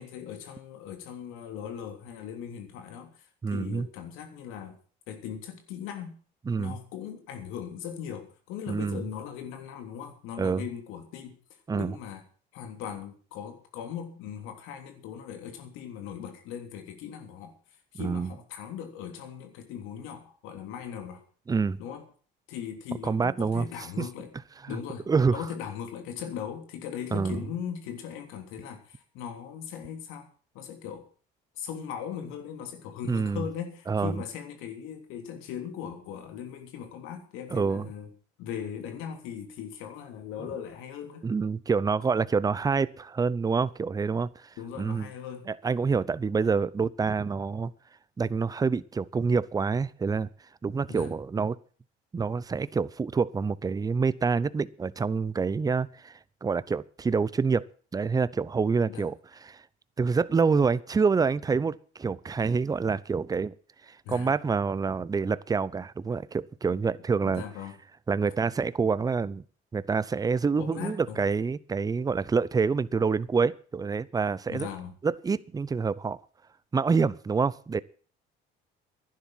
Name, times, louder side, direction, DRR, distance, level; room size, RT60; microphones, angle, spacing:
voice 1, 0.0-3.1 3.5-4.8 5.1-6.2 6.6-11.3 11.7-12.2 12.5-17.5 17.9-21.2 21.8-22.0 22.5-24.3 24.7-30.3 30.5-31.1 31.6-38.1 38.4-41.3 44.6-45.5 50.9-51.2 58.9-59.1 64.0-64.3 67.3-67.7 70.6-71.2 74.5-75.0, left 8 dB, 80° left, 3.3 m, -39 dB
voice 2, 3.4-3.9 6.5-6.8 8.7-9.0 10.4-10.6 11.7-12.0 18.0-18.3 21.5-21.8 23.0-23.7 24.0-24.1 25.1-25.4 27.1-27.4 33.1-33.4 33.9-34.2 37.5-37.9 41.2-44.3 44.8-45.1 45.5-47.7 48.2-50.3 50.6-51.6 52.1-56.1 56.4-57.7 57.9-59.1 59.5-59.6 60.0-63.5 63.9-67.4 68.1-69.4 69.7-74.7 75.0-76.2 76.7-77.8, right 5 dB, 20° right, 0.7 m, -27 dB
11.5 x 10.5 x 7.7 m
cardioid pair, 110°, 21 cm